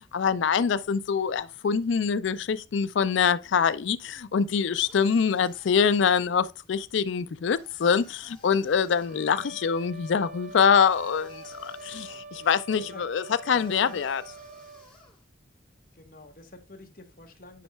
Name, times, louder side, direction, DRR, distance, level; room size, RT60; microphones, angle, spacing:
voice 1, 0.1-14.2, left 6 dB, 75° left, 0.4 m, -24 dB
sound 1, 4.8-6.4 7.5-9.3 10.5-12.3 13.4-15.3, left 2 dB, 5° left, 4.3 m, -55 dB
sound 2, 8.9-14.9, right 2 dB, 40° right, 0.9 m, -45 dB
voice 2, 11.9-12.5 12.8-13.0 13.6-14.1 15.9-17.6, left 2 dB, 50° left, 1.7 m, -48 dB
10.0 x 5.4 x 2.2 m
head